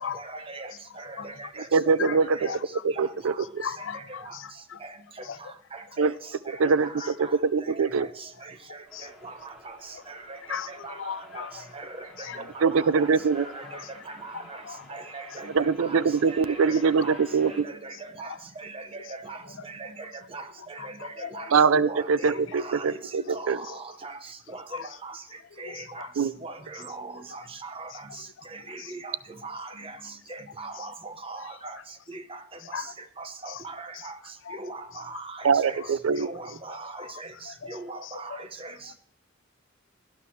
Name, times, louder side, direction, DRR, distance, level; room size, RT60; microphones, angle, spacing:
voice 1, 0.1-0.7 1.0-1.7 2.0-2.5 2.9-3.4 4.2-4.4 4.8-4.9 5.7-6.1 6.5-8.3 8.7-8.8 9.2-9.3 9.7-9.8 10.1-11.5 11.7-12.1 12.5-13.1 13.3-13.8 14.2-14.6 14.9-16.0 16.2-17.1 17.4-21.5 21.8-24.2 24.5-25.2 25.6-26.1 26.4-28.1 28.5-29.1 29.4-30.0 30.3-31.8 32.1-32.4 33.2-34.1 34.5-35.8 36.2-37.3 37.7-38.7, right 3 dB, 25° right, 9 dB, 0.9 m, -40 dB
voice 2, 1.7-2.5 2.8-3.6 6.0-6.1 6.6-6.9 7.2-8.1 12.6-13.4 15.5-17.5 21.5-23.6 26.2-26.3 35.4-36.3, right 5 dB, 75° right, 17 dB, 0.4 m, -23 dB
voice 3, 3.6-4.8 5.3-5.4 8.9-9.1 10.5-11.6 12.2-12.4 13.7-13.8 14.7-15.0 20.8-20.9 21.2-21.5 24.7-24.8 25.6-26.1 28.8-28.9 32.7-32.9 34.5-34.6 37.5-37.7, left 7 dB, 60° left, 16 dB, 0.5 m, -37 dB
sound 1, 8.9-17.6, equal, ahead, 3.3 m, -51 dB
17.5 x 11.5 x 3.2 m, 0.68 s
head